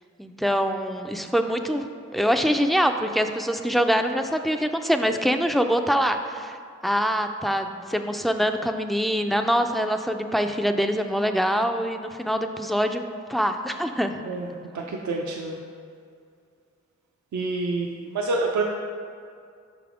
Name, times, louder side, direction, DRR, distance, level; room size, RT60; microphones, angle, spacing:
voice 1, 0.2-1.8 2.1-6.6 6.8-13.0 13.3-14.2 14.7-14.8, equal, ahead, 6 dB, 0.4 m, -24 dB
voice 2, 14.3-15.6 17.3-18.6, right 3 dB, 70° right, 0 dB, 0.6 m, -28 dB
5.8 x 3.5 x 4.8 m, 2.3 s
cardioid pair, 50°, 29 cm